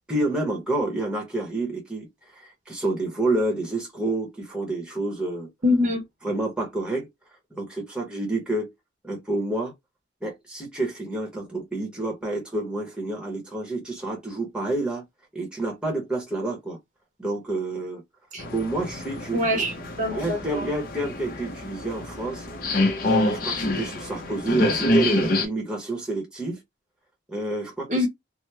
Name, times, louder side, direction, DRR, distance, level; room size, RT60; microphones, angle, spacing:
voice 1, 0.1-5.5 6.2-7.1 7.5-8.7 9.0-9.7 10.2-15.1 15.3-16.8 17.2-18.0 18.5-19.6 20.1-22.5 23.0-26.6 27.3-28.0, right 2 dB, 5° right, 0.9 m, -28 dB
voice 2, 5.6-6.0 18.3-18.4 19.3-20.7 27.9-28.1, left 2 dB, 40° right, 0.7 m, -24 dB
sound 1, 18.4-25.5, left 1 dB, 45° left, 0.7 m, -27 dB
3.0 x 2.0 x 3.3 m
head